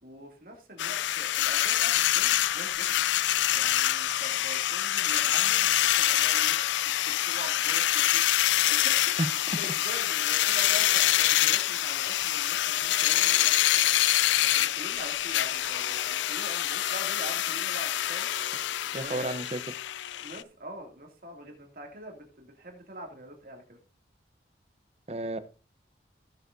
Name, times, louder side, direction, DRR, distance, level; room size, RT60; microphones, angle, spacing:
voice 1, 0.0-2.9 3.5-6.6 6.8-13.5 14.4-19.3 20.1-23.8, right 1 dB, 50° right, 2 dB, 2.4 m, -44 dB
sound 1, 0.8-20.4, left 13 dB, 80° left, 0.4 m, -26 dB
sound 2, 10.3-12.1 12.8-14.6 15.3-17.2 17.8-19.7, right 1 dB, 55° left, 4.7 m, -50 dB
voice 2, 18.9-19.6 25.1-25.4, right 1 dB, 35° right, 12 dB, 0.7 m, -31 dB
17.0 x 7.0 x 2.6 m, 0.32 s
head